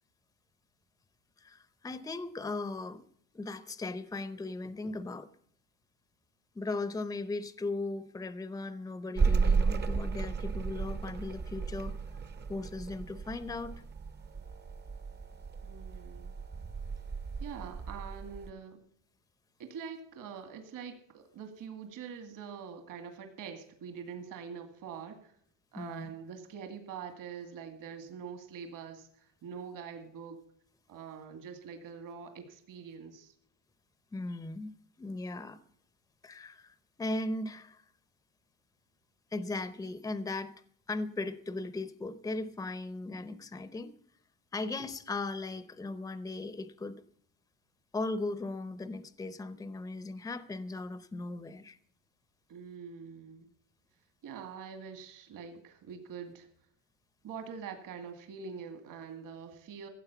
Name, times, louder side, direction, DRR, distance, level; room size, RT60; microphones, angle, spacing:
voice 1, 1.4-3.0 3.3-5.3 6.5-11.9 12.5-13.7 25.7-26.1 34.1-34.7 35.0-35.6 36.2-37.8 39.3-40.5 40.9-43.9 44.5-47.0 47.9-51.8, left 2 dB, 10° left, 0.7 m, -37 dB
sound 1, 9.2-18.5, right 5 dB, 25° right, 0.8 m, -33 dB
voice 2, 15.6-16.3 17.4-18.8 19.6-25.3 25.7-30.4 30.9-33.3 52.5-53.5 54.2-56.5 57.2-59.9, right 6 dB, 55° right, 2.2 m, -44 dB
15.5 x 7.7 x 6.9 m
cardioid pair, 135°, 37 cm